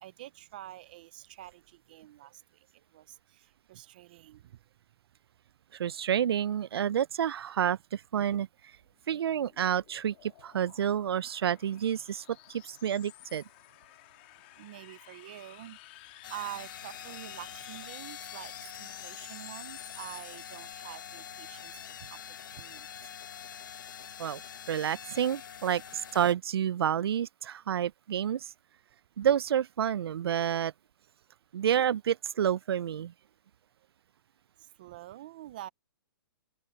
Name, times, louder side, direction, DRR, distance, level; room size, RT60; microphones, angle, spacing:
voice 1, 0.0-2.4 2.9-4.6 14.6-22.2 22.6-22.9 34.8-35.7, right 15 dB, 20° right, 0.5 m, -46 dB
voice 2, 5.7-8.5 9.1-13.4 24.2-24.4 24.7-28.5 29.2-30.7 31.5-33.1, right 9 dB, 80° right, 0.4 m, -29 dB
sound 1, 8.9-20.7, left 20 dB, 25° left, 1.6 m, -52 dB
sound 2, 16.2-26.3, left 8 dB, 55° left, 1.4 m, -45 dB
open air
hypercardioid pair, 180°, 13 cm